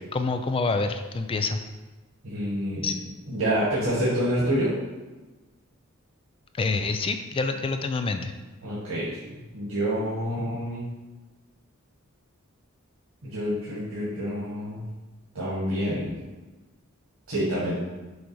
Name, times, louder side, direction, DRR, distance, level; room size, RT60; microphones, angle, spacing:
voice 1, 0.1-1.6 2.8-2.9 6.5-8.3, left 3 dB, 25° left, 7 dB, 0.3 m, -27 dB
voice 2, 2.2-2.9 3.3-4.7 8.6-9.2 9.5-10.8 13.2-14.8 15.3-16.2 17.3-17.8, equal, 85° right, -9 dB, 1.8 m, -27 dB
6.3 x 3.4 x 4.7 m, 1.2 s
head